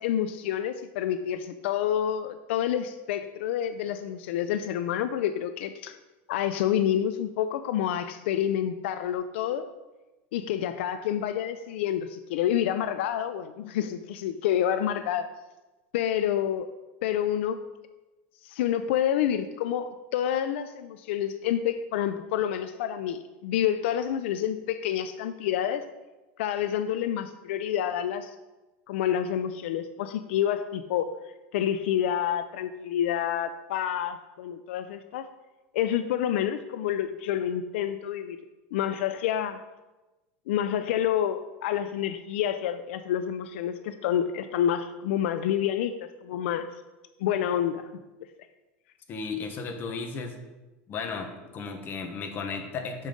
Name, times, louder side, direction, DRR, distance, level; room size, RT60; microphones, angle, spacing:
voice 1, 0.0-6.0 6.3-9.7 10.3-15.3 15.9-16.7 17.0-17.6 18.4-25.8 26.4-28.3 28.9-31.1 31.5-35.3 35.7-38.4 38.7-39.6 40.5-46.7 47.2-47.9, left 10 dB, 85° left, 10 dB, 0.4 m, -28 dB
voice 2, 49.1-50.4 50.9-53.1, left 4 dB, 35° left, 4 dB, 1.1 m, -34 dB
7.4 x 5.3 x 3.8 m, 1.1 s
supercardioid pair, 140°, 6 cm